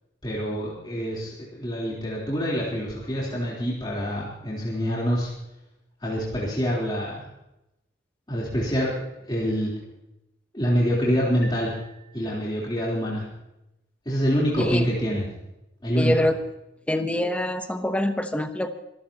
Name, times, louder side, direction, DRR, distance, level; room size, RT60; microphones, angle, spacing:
voice 1, 0.2-5.3 6.0-7.3 8.3-9.7 10.5-11.8 12.1-13.3 14.1-15.3 15.8-16.1, equal, 25° left, -6 dB, 3.6 m, -26 dB
sound 1, 11.4-12.9, equal, 75° left, 5.3 m, -46 dB
voice 2, 16.0-16.3 16.9-18.7, left 1 dB, 5° left, 7 dB, 0.9 m, -25 dB
24.5 x 14.5 x 2.9 m, 0.87 s
head